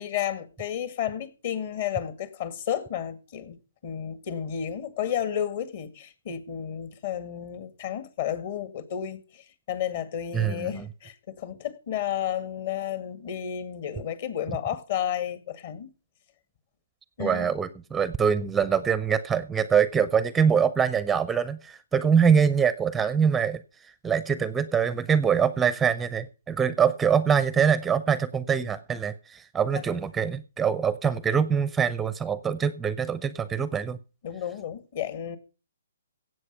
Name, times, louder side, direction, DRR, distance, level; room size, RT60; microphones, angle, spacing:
voice 1, 0.0-3.6 3.8-9.2 9.7-15.9 17.2-17.5 34.2-35.4, left 10 dB, 50° left, 2.1 m, -32 dB
voice 2, 10.3-10.9 17.2-23.6 24.0-34.0, right 7 dB, 10° right, 0.6 m, -24 dB
16.5 x 8.0 x 5.5 m
hypercardioid pair, 145°, 0 cm